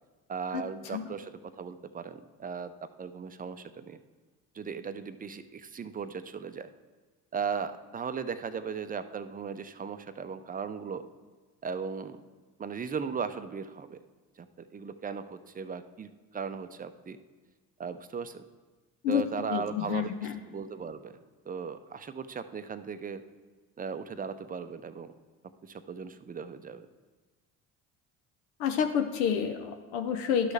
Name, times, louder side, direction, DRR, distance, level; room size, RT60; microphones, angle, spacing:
voice 1, 0.3-4.0 4.5-6.7 7.3-11.0 11.6-12.2 12.6-14.0 14.4-17.2 17.8-18.4 19.1-21.2 21.5-23.2 23.8-25.2 25.6-26.9, right 6 dB, 20° right, 11 dB, 0.5 m, -37 dB
voice 2, 19.5-20.4 28.6-30.5, left 8 dB, 75° left, 7 dB, 0.7 m, -29 dB
11.5 x 6.2 x 3.3 m, 1.3 s
hypercardioid pair, 55°, 45 cm